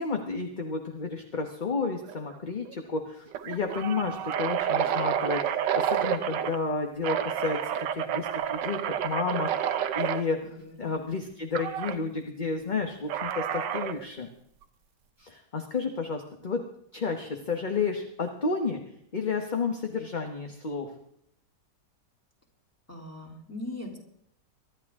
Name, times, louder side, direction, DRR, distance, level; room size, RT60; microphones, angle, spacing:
voice 1, 0.0-7.6 7.9-10.4 10.8-14.3 15.2-16.6 16.9-18.8 19.1-20.9, left 4 dB, 30° left, 4 dB, 1.1 m, -31 dB
sound 1, 2.1-2.4 2.7-2.8 3.3-6.6 7.0-10.2 11.6-12.0 13.1-14.0, right 9 dB, 80° right, 1.5 m, -29 dB
voice 2, 10.4-11.0 22.9-24.0, left 1 dB, 10° left, 0 dB, 3.3 m, -40 dB
23.5 x 11.5 x 3.7 m, 0.70 s
omnidirectional pair, 1.9 m